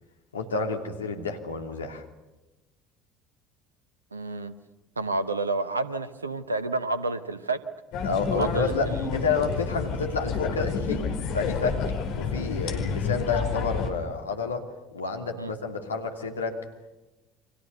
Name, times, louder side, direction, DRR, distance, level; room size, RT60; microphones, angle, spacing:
voice 1, 0.3-2.0 8.0-11.0 11.3-11.8 12.1-14.7 14.9-16.6, left 4 dB, 85° left, 4 dB, 2.9 m, -29 dB
voice 2, 4.1-4.5 5.0-7.6 8.3-9.0 15.4-15.5, right 3 dB, 90° right, 13 dB, 1.1 m, -30 dB
sound 1, 7.9-13.9, left 5 dB, 60° left, 4.7 m, -29 dB
29.5 x 25.0 x 6.8 m, 1.1 s
figure-of-eight pair, 65°, 0 cm